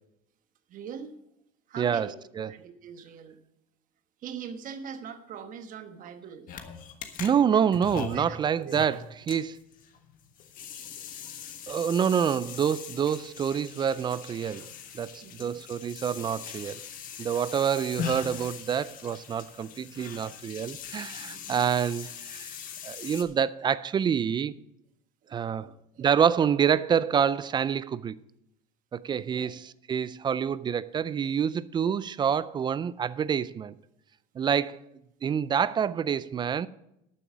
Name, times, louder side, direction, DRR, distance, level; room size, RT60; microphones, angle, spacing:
voice 1, 0.7-1.2 1.7-2.1 2.5-3.4 4.2-6.5 8.1-9.0 15.2-15.6 21.3-21.7 25.2-26.1 29.1-29.6, right 7 dB, 45° right, 1.2 m, -43 dB
voice 2, 1.8-2.5 7.2-9.0 9.3-9.6 11.7-16.8 17.2-22.5 22.8-24.5 25.3-25.7 26.0-28.2 28.9-33.7 34.4-34.8 35.2-36.7, right 8 dB, 25° right, 0.3 m, -27 dB
sound 1, 6.5-23.2, left 8 dB, 45° left, 1.4 m, -41 dB
12.0 x 7.0 x 6.1 m
supercardioid pair, 120°, 19 cm